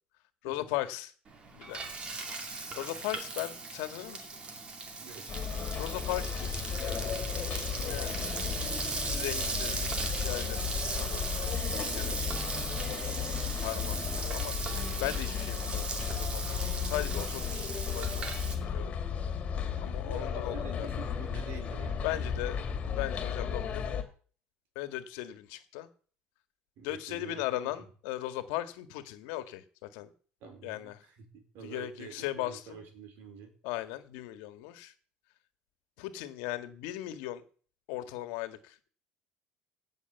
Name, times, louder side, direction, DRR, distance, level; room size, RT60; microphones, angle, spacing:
voice 1, 0.4-1.1 1.5-1.8 2.4-4.3 5.8-7.3 7.7-8.2 8.8-12.2 12.8-18.3 18.6-18.9 19.8-20.9 22.0-24.0 24.8-25.9 26.8-30.1 30.6-31.0 31.6-32.8 33.6-34.9 36.0-37.4 37.9-38.9, left 15 dB, 85° left, 10 dB, 1.7 m, -38 dB
Frying (food), 1.3-18.5, right 3 dB, 30° right, 2.5 m, -38 dB
sound 1, 5.3-24.0, left 7 dB, 35° left, 2.5 m, -34 dB
voice 2, 19.7-22.2 26.8-27.8 30.4-33.5, right 6 dB, 65° right, 6 dB, 4.6 m, -48 dB
17.0 x 6.6 x 7.0 m, 0.43 s
cardioid pair, 145°, 4 cm